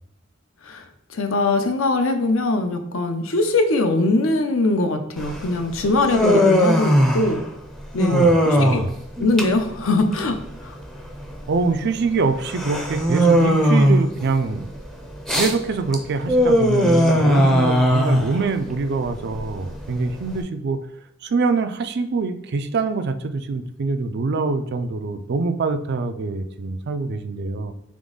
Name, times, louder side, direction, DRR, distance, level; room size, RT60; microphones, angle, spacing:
voice 1, 0.6-7.4 7.9-8.2 8.5-8.9 9.2-10.8, left 2 dB, 75° left, 6 dB, 0.6 m, -22 dB
Human voice, 5.2-20.4, equal, ahead, 0.5 m, -20 dB
voice 2, 8.6-8.9 11.5-14.7 15.3-20.8 21.2-27.7, right 4 dB, 55° right, 9 dB, 0.4 m, -24 dB
3.7 x 3.5 x 3.8 m, 0.82 s
head